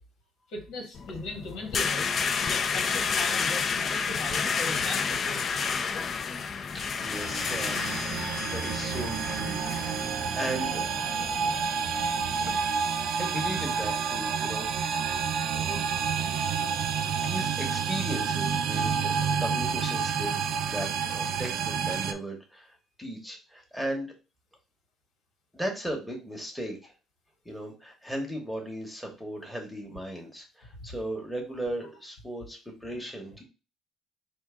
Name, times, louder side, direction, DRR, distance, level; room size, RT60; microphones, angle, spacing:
voice 1, 0.5-2.1 2.4-5.6 30.8-30.9, left 2 dB, 90° left, 2 dB, 1.6 m, -38 dB
sound 1, 1.0-12.6, left 6 dB, 35° left, 0.3 m, -31 dB
voice 2, 7.0-9.6 9.9-11.0 12.3-12.4 13.2-14.7 15.5-15.9 16.8-24.1 25.5-26.9 27.4-33.4, right 1 dB, ahead, 1 dB, 1.0 m, -37 dB
sound 2, 7.1-22.1, right 6 dB, 60° right, 0.5 m, -29 dB
4.5 x 2.6 x 3.7 m, 0.32 s
cardioid pair, 145°, 0 cm